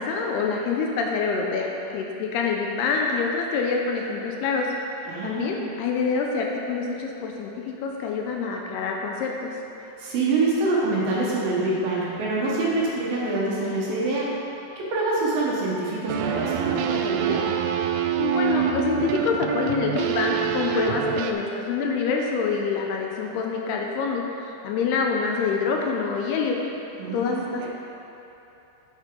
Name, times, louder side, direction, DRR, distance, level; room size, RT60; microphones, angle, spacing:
voice 1, 0.0-4.7 5.2-9.5 18.2-26.6 27.1-27.7, left 5 dB, 80° left, 0 dB, 2.6 m, -26 dB
voice 2, 5.0-5.6 10.0-14.3 14.8-17.4 27.0-27.7, right 2 dB, 65° right, -6 dB, 2.8 m, -25 dB
sound 1, 16.1-21.3, right 9 dB, 80° right, 2.3 m, -26 dB
9.1 x 8.1 x 3.8 m, 3.0 s
omnidirectional pair, 4.9 m